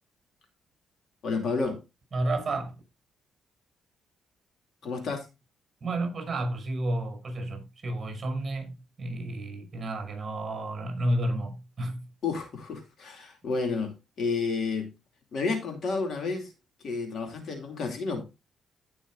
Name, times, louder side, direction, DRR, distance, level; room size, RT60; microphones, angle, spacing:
voice 1, 1.2-1.8 4.8-5.2 12.2-14.9 15.3-16.5 16.8-18.2, left 4 dB, 55° left, 2.5 m, -30 dB
voice 2, 2.1-2.8 5.8-12.1, right 1 dB, 25° right, 6.2 m, -31 dB
17.0 x 6.2 x 2.5 m
cardioid pair, 120°, 0 cm